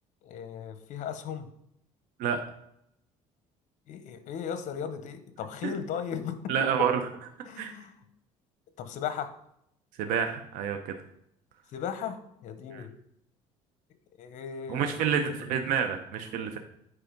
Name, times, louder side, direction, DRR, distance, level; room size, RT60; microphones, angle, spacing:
voice 1, 0.2-1.5 3.9-6.9 7.4-7.9 8.8-9.3 11.7-12.9 14.1-14.9 15.2-15.3, left 8 dB, 65° left, 11 dB, 1.1 m, -36 dB
voice 2, 6.5-6.9 7.6-7.7 10.0-10.8 12.7-12.8 14.7-16.6, right 7 dB, 80° right, 6 dB, 0.9 m, -28 dB
8.4 x 4.9 x 5.2 m, 0.75 s
cardioid pair, 130°, 14 cm